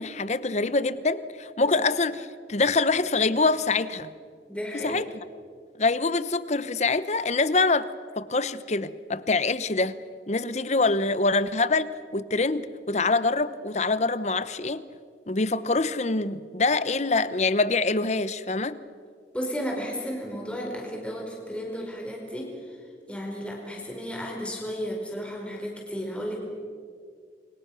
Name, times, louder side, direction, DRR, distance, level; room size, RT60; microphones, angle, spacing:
voice 1, 0.0-4.1 4.7-5.1 5.8-10.0 10.3-14.9 15.3-18.8, left 3 dB, 40° left, 15 dB, 0.9 m, -25 dB
voice 2, 4.5-5.0 19.3-22.5 23.1-26.4, equal, 5° left, -1 dB, 4.4 m, -33 dB
28.5 x 23.5 x 6.3 m, 2.1 s
head